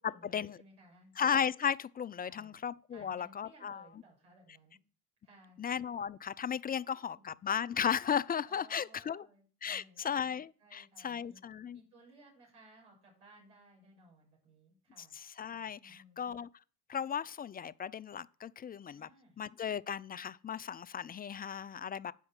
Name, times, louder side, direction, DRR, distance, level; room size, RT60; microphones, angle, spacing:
voice 1, 0.0-1.2 2.2-2.6 2.9-4.8 5.2-5.6 6.7-7.4 8.5-11.4 11.7-15.1 15.8-16.3 18.9-19.4, right 1 dB, 80° right, 6.7 m, -60 dB
voice 2, 1.2-3.8 5.6-9.3 9.6-11.8 15.1-16.5 16.9-19.1 19.4-22.1, left 8 dB, 20° left, 0.4 m, -35 dB
8.9 x 5.7 x 7.9 m
hypercardioid pair, 55°, 49 cm